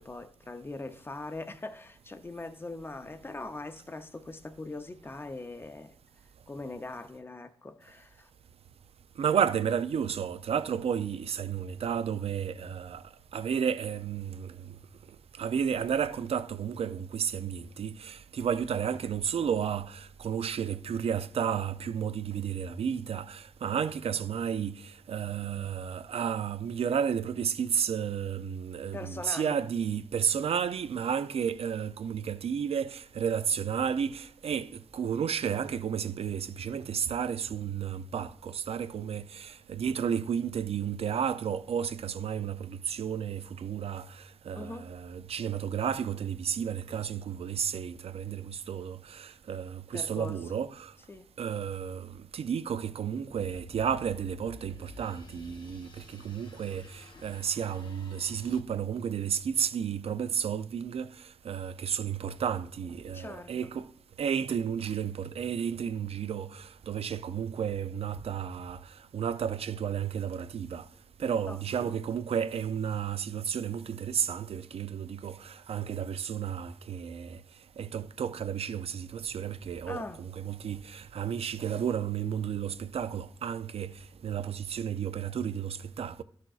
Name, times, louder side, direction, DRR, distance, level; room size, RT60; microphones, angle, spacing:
voice 1, 0.0-6.0 6.5-8.3 28.9-29.6 44.6-44.9 49.9-50.4 51.1-51.3 63.1-63.7 71.5-72.0 79.9-80.3, left 2 dB, 25° left, 0.6 m, -41 dB
voice 2, 9.2-13.0 13.3-14.8 15.4-50.9 51.4-63.9 64.2-70.9 71.2-77.4 77.8-86.2, right 8 dB, 85° right, 0.4 m, -32 dB
sound 1, 53.3-58.6, left 3 dB, 50° left, 0.8 m, -51 dB
12.5 x 6.2 x 2.4 m
wide cardioid pair, 135°, 10 cm